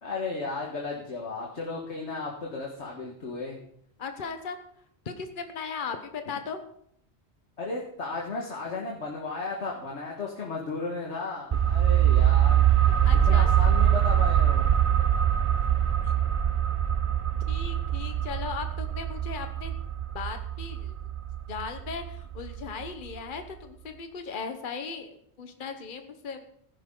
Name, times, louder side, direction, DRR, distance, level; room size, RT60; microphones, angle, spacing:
voice 1, 0.0-3.6 7.6-12.7 13.3-14.7, left 3 dB, 90° left, -2 dB, 1.9 m, -34 dB
voice 2, 4.0-4.6 5.0-6.6 13.0-13.5 16.0-16.1 17.5-19.8 20.1-20.9 21.5-26.5, left 5 dB, 50° left, 7 dB, 1.2 m, -37 dB
sound 1, 11.5-22.9 23.2-23.3, right 10 dB, 45° right, 0.4 m, -24 dB
15.0 x 11.0 x 3.8 m, 0.67 s
omnidirectional pair, 1.1 m